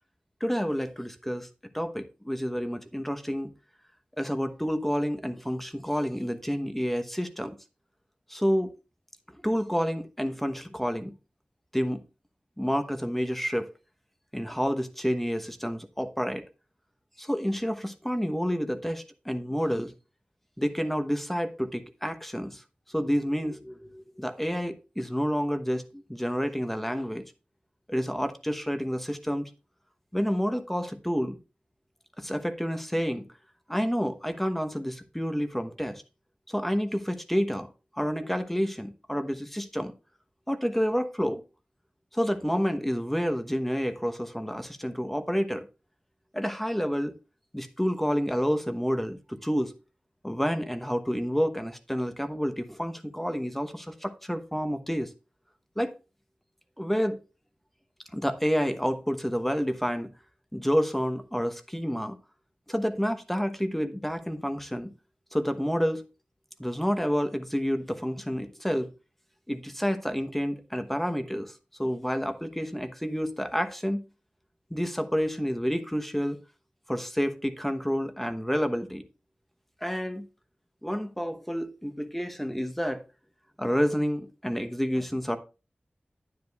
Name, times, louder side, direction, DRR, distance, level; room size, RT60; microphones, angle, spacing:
voice 1, 0.4-1.5 1.7-3.5 4.2-7.5 8.3-8.7 9.4-11.1 11.7-12.0 12.6-13.7 14.3-16.4 17.2-19.9 20.6-22.6 22.9-27.2 27.9-29.5 30.1-31.4 32.2-33.3 33.7-36.0 36.5-37.7 38.0-39.9 40.5-41.4 42.1-45.7 46.3-47.1 47.5-49.7 50.2-55.1 55.8-55.9 56.8-57.2 58.1-60.1 60.5-62.2 62.7-64.9 65.3-66.1 66.6-68.9 69.5-71.5 71.8-74.0 74.7-76.4 76.9-79.1 79.8-80.3 80.8-83.0 83.6-85.4, equal, 5° left, 1.1 m, -29 dB
10.0 x 9.7 x 2.4 m
wide cardioid pair, 55°, 3 cm